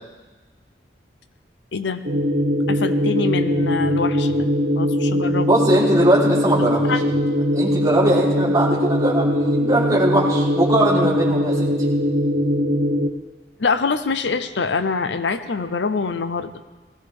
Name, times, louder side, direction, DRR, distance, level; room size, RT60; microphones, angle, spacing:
voice 1, 1.7-2.0 2.7-4.5 4.8-5.5 6.9-7.1 13.6-16.5, left 4 dB, 75° left, 11 dB, 0.6 m, -24 dB
sound 1, 2.0-13.1, equal, 80° right, 1.2 m, -21 dB
voice 2, 5.5-6.8 7.5-11.7, right 1 dB, 20° right, -7 dB, 3.4 m, -20 dB
20.0 x 16.0 x 3.5 m, 1.3 s
head